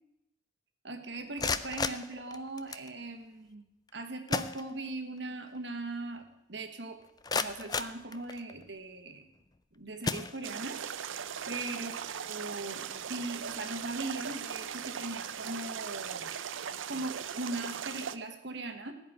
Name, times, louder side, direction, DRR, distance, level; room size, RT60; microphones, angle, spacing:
voice 1, 0.8-3.7 3.9-7.0 7.3-9.3 9.7-10.8 11.1-16.4 16.9-18.9, right 2 dB, 65° right, 6 dB, 1.4 m, -39 dB
sound 1, 1.2-2.9 3.9-4.0 4.3-5.2 5.5-5.6 6.2-6.3 6.8-8.7 9.4-9.6 10.0-10.9, left 4 dB, 20° left, 0.4 m, -35 dB
sound 2, 10.4-18.2, right 8 dB, 90° right, 0.6 m, -39 dB
15.5 x 5.3 x 9.3 m, 0.91 s
head